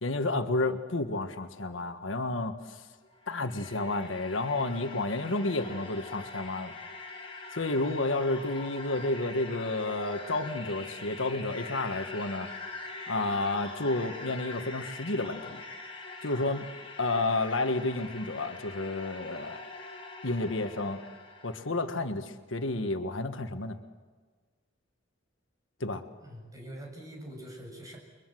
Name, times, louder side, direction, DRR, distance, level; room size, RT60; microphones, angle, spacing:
voice 1, 0.0-2.8 3.3-6.8 7.5-12.5 13.1-15.6 16.2-16.7 17.0-19.6 20.2-21.0 21.4-23.8 25.8-26.0, left 2 dB, 75° left, 7 dB, 1.5 m, -31 dB
sound 1, 3.0-21.7, left 3 dB, 30° left, 5.9 m, -43 dB
voice 2, 26.2-28.0, right 1 dB, 20° right, 1 dB, 7.3 m, -44 dB
29.5 x 23.0 x 7.8 m, 1.4 s
head